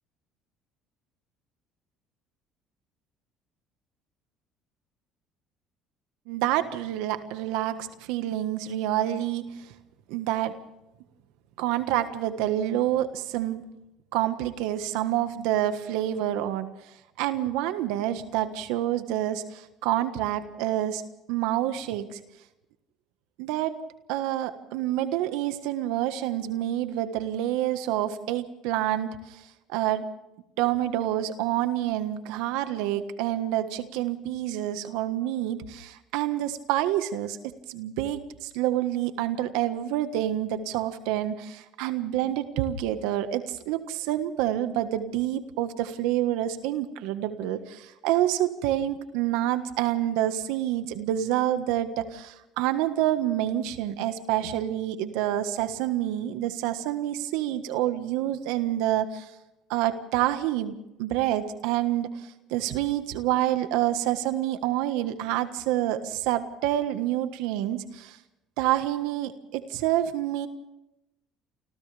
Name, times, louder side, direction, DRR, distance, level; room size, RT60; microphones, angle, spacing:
voice 1, 6.3-9.7 10.1-10.6 11.6-13.6 14.1-16.7 17.2-21.0 21.3-22.2 23.4-23.7 24.1-30.1 30.6-59.3 59.7-68.2 68.6-70.5, right 12 dB, 85° right, 9 dB, 1.5 m, -28 dB
29.5 x 25.5 x 3.5 m, 0.89 s
cardioid pair, 115°, 0 cm